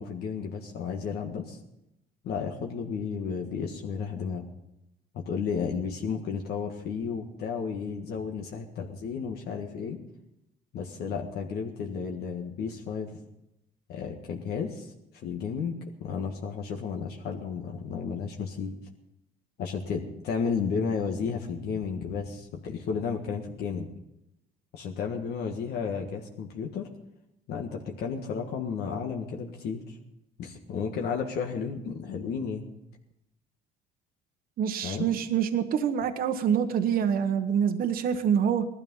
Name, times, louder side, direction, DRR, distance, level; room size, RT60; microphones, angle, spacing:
voice 1, 0.0-1.6 2.2-4.5 5.1-10.0 10.7-13.2 13.9-14.9 15.2-18.7 19.6-23.9 24.7-26.9 27.5-30.0 30.4-32.7 34.8-35.1, left 6 dB, 70° left, 1 dB, 1.7 m, -33 dB
voice 2, 34.6-38.7, right 8 dB, 60° right, 8 dB, 1.1 m, -26 dB
18.0 x 12.5 x 5.5 m, 0.88 s
cardioid pair, 110°, 17 cm